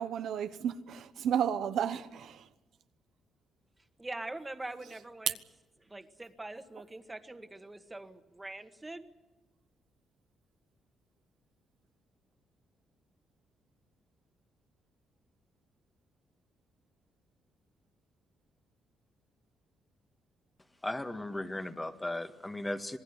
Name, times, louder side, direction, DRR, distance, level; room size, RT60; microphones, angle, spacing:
voice 1, 0.0-2.4, right 8 dB, 75° right, 1.1 m, -32 dB
voice 2, 4.0-5.4 5.8-9.1, right 2 dB, 15° right, 1.9 m, -43 dB
voice 3, 20.8-23.0, left 1 dB, 15° left, 1.7 m, -36 dB
27.0 x 19.0 x 8.3 m
cardioid pair, 95°, 0 cm